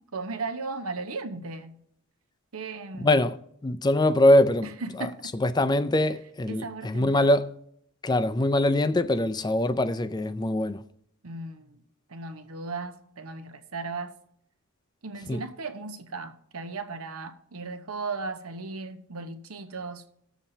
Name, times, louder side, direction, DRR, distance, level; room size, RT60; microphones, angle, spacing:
voice 1, 0.1-1.8 2.5-3.2 4.6-5.3 6.5-7.3 11.2-11.8 12.1-14.1 15.0-20.0, right 3 dB, 90° right, 1.0 m, -36 dB
voice 2, 3.0-3.4 3.6-4.7 5.4-7.5 8.0-10.8 15.3-15.4, left 1 dB, 20° left, 0.4 m, -23 dB
19.0 x 7.2 x 2.8 m
head